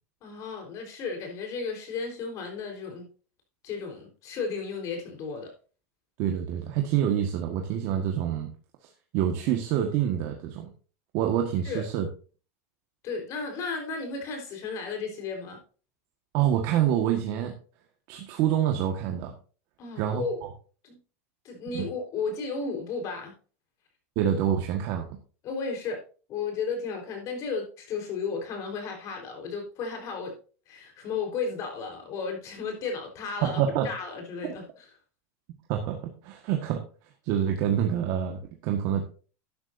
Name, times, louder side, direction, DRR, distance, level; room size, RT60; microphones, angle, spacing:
voice 1, 0.2-3.1 3.6-5.5 11.6-11.8 13.0-15.6 19.8-20.5 20.8-21.0 21.4-23.3 25.4-26.0 26.3-30.3 30.7-34.9, left 4 dB, 40° left, 3 dB, 4.2 m, -34 dB
voice 2, 6.2-8.5 9.1-10.7 11.1-12.1 16.3-17.5 18.1-19.3 20.0-20.5 21.7-21.9 24.1-25.1 33.4-33.9 34.4-34.5 35.7-36.0 36.2-36.8 37.2-39.0, right 10 dB, 55° right, 3 dB, 1.6 m, -26 dB
12.5 x 9.9 x 2.7 m, 0.38 s
supercardioid pair, 140°, 8 cm